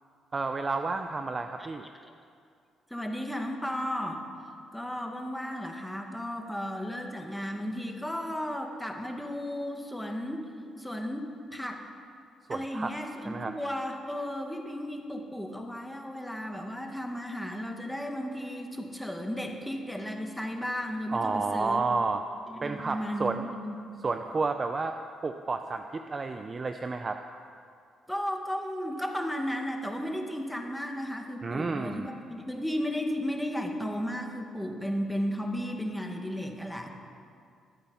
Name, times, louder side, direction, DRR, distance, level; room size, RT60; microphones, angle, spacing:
voice 1, 0.3-1.9 12.5-12.9 13.2-13.5 21.1-22.2 22.6-23.5 24.0-24.9 25.2-27.2 31.4-32.1, right 4 dB, 35° right, 7 dB, 0.6 m, -31 dB
voice 2, 2.9-4.2 4.7-10.5 10.8-11.8 12.5-21.8 22.5-23.8 28.1-36.9, equal, 5° left, 2 dB, 2.0 m, -34 dB
23.0 x 8.7 x 5.6 m, 2.3 s
cardioid pair, 90°, 0 cm